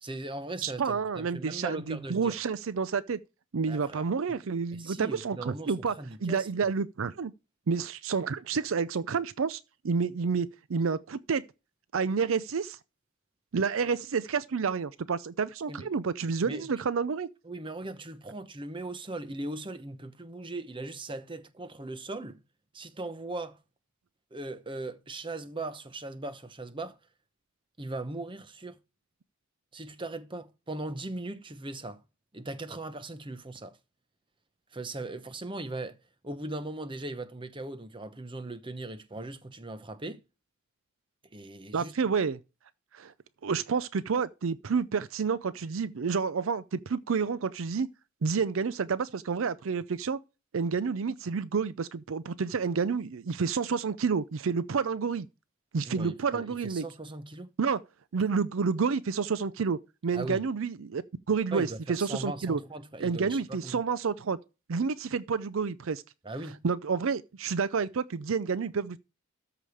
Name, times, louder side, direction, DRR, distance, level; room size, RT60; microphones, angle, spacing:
voice 1, 0.0-2.4 3.7-4.0 4.7-6.5 15.7-15.9 16.4-16.7 17.4-22.4 22.7-23.6 24.3-27.0 27.8-28.8 29.7-32.0 32.3-33.8 34.7-36.0 36.2-40.2 41.3-41.9 55.8-57.5 60.1-60.4 61.5-63.8 66.2-66.6, right 2 dB, 25° right, 0.9 m, -39 dB
voice 2, 0.6-3.2 3.5-6.0 6.2-7.3 7.7-11.4 11.9-12.8 13.5-17.3 41.7-42.4 42.9-43.1 43.4-47.9 48.2-50.2 50.5-55.3 55.7-56.8 57.6-57.8 58.1-61.0 61.3-62.6 63.0-64.4 64.7-66.0 66.6-69.0, right 5 dB, 70° right, 0.5 m, -29 dB
13.5 x 5.0 x 4.9 m
head